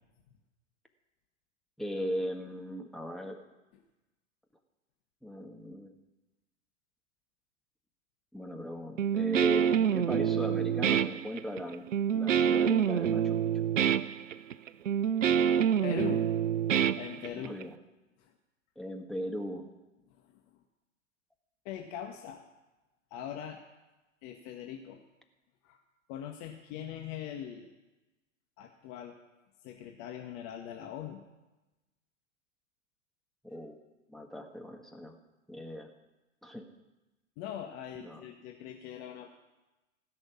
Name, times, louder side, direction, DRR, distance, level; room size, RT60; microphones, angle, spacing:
voice 1, 1.8-3.4 5.2-5.9 8.3-11.8 12.1-13.6 17.3-17.7 18.7-19.7 33.4-33.8 34.1-35.2 35.5-35.9 36.4-36.6 38.0-38.2, equal, ahead, 3 dB, 1.6 m, -38 dB
Guitar, 9.0-17.6, right 8 dB, 75° right, 0.7 m, -27 dB
voice 2, 15.8-16.2 16.9-17.5 21.6-22.4 23.1-23.6 24.2-25.0 25.6-25.8 26.1-27.7 28.6-29.2 29.6-31.2 37.4-39.3, left 10 dB, 40° left, 2 dB, 1.7 m, -41 dB
17.0 x 6.8 x 9.9 m, 1.1 s
figure-of-eight pair, 100°, 38 cm